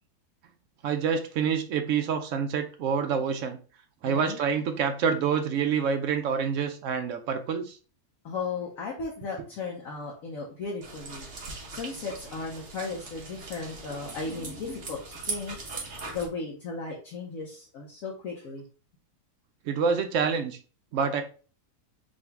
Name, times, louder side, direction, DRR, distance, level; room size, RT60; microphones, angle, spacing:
voice 1, 0.8-3.6 4.0-7.8 19.7-20.6 20.9-21.2, right 6 dB, 70° right, 6 dB, 0.8 m, -27 dB
voice 2, 4.0-4.4 8.2-11.3 11.7-15.6 16.1-18.6, left 4 dB, 65° left, -2 dB, 1.1 m, -36 dB
sound 1, 10.8-16.3, right 3 dB, 50° right, 1.1 m, -40 dB
3.8 x 2.7 x 3.4 m, 0.37 s
omnidirectional pair, 1.7 m